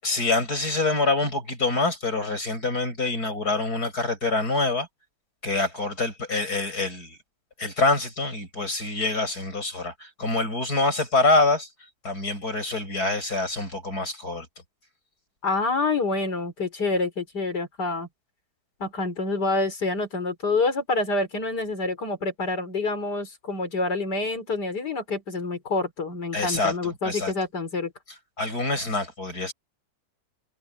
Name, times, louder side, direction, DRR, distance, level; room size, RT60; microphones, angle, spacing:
voice 1, 0.0-4.9 5.4-7.2 7.6-11.7 12.0-14.5 26.3-27.3 28.4-29.5, left 3 dB, 70° left, 8.6 m, -25 dB
voice 2, 15.4-18.1 18.8-27.9, left 3 dB, 85° left, 4.5 m, -27 dB
omnidirectional pair, 1.7 m